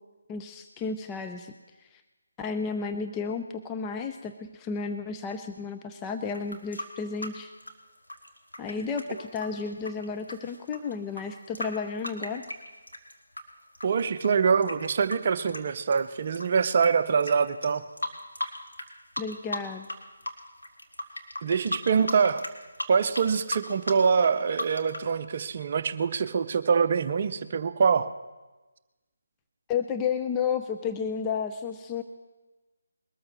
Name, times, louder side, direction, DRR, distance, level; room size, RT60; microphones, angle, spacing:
voice 1, 0.3-1.5 2.4-7.5 8.6-12.4 19.2-19.9 29.7-32.0, left 5 dB, 15° left, 6 dB, 0.4 m, -32 dB
sound 1, 6.3-13.4 13.7-16.9 17.2-17.3 17.6-18.9 19.1-20.0 20.2-25.1, left 1 dB, 85° left, 2.0 m, -36 dB
voice 2, 13.8-17.8 21.4-22.4 22.9-28.1, right 6 dB, 40° right, 11 dB, 0.6 m, -24 dB
21.5 x 13.5 x 3.2 m, 1.2 s
figure-of-eight pair, 155°, 0 cm